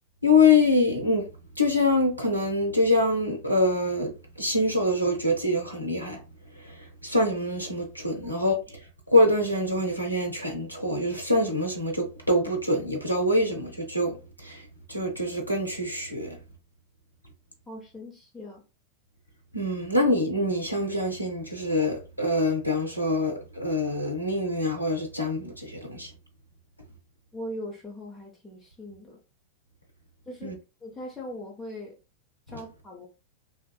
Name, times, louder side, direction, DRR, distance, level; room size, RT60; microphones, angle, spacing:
voice 1, 0.2-1.3 1.6-6.2 6.6-8.8 9.1-16.4 19.5-26.1 30.4-30.6 32.5-32.6, left 2 dB, 90° left, 0.5 m, -25 dB
voice 2, 17.7-18.6 27.3-29.2 30.3-30.5 30.8-31.9 32.5-33.1, left 1 dB, 10° left, 0.7 m, -40 dB
2.7 x 2.3 x 2.3 m
figure-of-eight pair, 90°, 0 cm